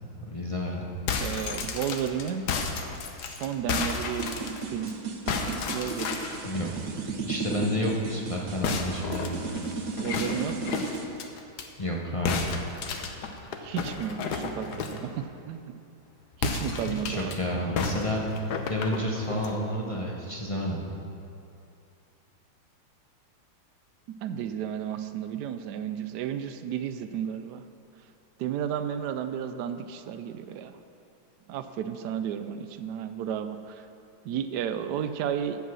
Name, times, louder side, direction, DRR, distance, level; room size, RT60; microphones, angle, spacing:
voice 1, 0.2-0.9 6.4-6.7 7.2-9.4 11.8-12.6 16.9-18.2 18.7-20.8, equal, 30° left, -2 dB, 0.5 m, -30 dB
sound 1, 0.9-4.9 5.3-6.4 8.6-11.7 12.3-15.1 16.3-17.4 17.8-19.6, left 5 dB, 60° left, 1.2 m, -32 dB
voice 2, 1.2-2.4 3.3-5.0 5.7-6.2 10.0-10.8 13.6-15.7 16.4-17.4 24.2-27.6 28.4-30.8 31.5-33.9 34.2-35.6, right 9 dB, 75° right, 10 dB, 0.9 m, -33 dB
sound 2, 4.2-11.0, right 4 dB, 60° right, 1.5 m, -34 dB
16.5 x 5.5 x 6.2 m, 2.7 s
omnidirectional pair, 2.3 m